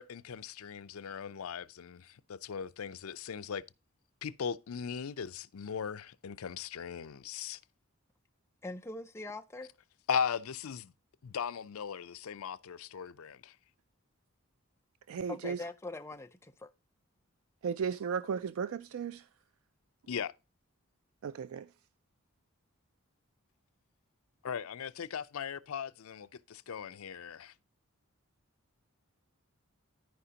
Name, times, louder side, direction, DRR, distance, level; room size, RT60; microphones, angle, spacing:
voice 1, 0.0-3.6 4.2-7.6 10.1-10.9 11.2-13.5 20.1-20.3 24.4-27.5, left 7 dB, 80° left, 0.5 m, -38 dB
voice 2, 8.6-9.7 15.3-16.7, left 2 dB, 10° left, 0.5 m, -42 dB
voice 3, 15.1-15.6 17.6-19.2 21.2-21.7, right 6 dB, 75° right, 0.4 m, -35 dB
13.5 x 5.0 x 2.8 m
head